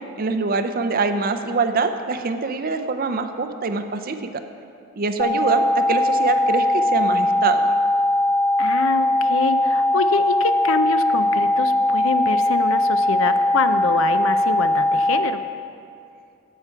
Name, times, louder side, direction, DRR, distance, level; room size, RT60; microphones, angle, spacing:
voice 1, 0.2-4.2 5.0-7.6, right 4 dB, 45° right, 8 dB, 0.5 m, -24 dB
sound 1, 5.2-15.2, left 1 dB, 15° left, 0.5 m, -20 dB
voice 2, 8.6-15.4, left 4 dB, 70° left, 10 dB, 0.5 m, -25 dB
15.5 x 5.9 x 4.6 m, 2.5 s
head